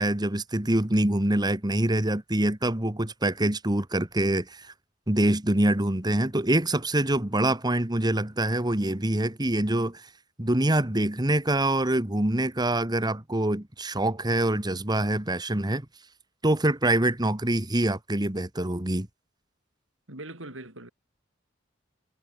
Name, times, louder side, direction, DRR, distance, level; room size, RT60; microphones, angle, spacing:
voice 1, 0.0-4.7 5.1-10.1 10.4-15.9 16.4-19.1, right 1 dB, 20° right, 1.7 m, -25 dB
voice 2, 20.1-20.9, right 2 dB, 85° right, 5.0 m, -41 dB
head